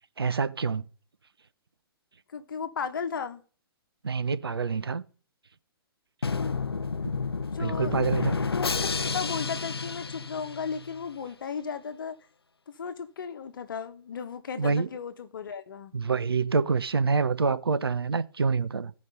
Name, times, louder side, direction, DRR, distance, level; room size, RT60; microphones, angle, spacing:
voice 1, 0.2-0.8 4.0-5.0 7.6-8.5 14.6-14.9 15.9-18.9, right 5 dB, 75° right, 0.8 m, -26 dB
voice 2, 2.3-3.4 7.3-8.2 8.5-12.2 12.7-15.9, left 6 dB, 60° left, 1.3 m, -35 dB
Drum, 6.2-11.1, left 4 dB, 85° left, 0.4 m, -30 dB
15.5 x 5.3 x 5.4 m
figure-of-eight pair, 120°, 13 cm